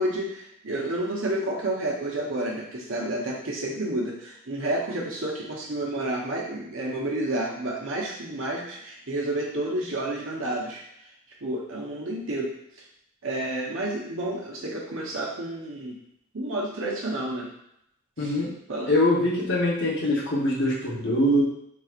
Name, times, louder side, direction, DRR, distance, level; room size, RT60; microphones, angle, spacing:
voice 1, 0.0-10.8 11.4-12.5 13.2-16.0 16.3-17.5 18.2-18.3 18.7-18.9, right 1 dB, 75° right, -2 dB, 0.9 m, -30 dB
voice 2, 18.2-18.5 18.9-21.4, left 1 dB, 60° left, -5 dB, 1.0 m, -23 dB
4.0 x 2.9 x 2.5 m, 0.76 s
head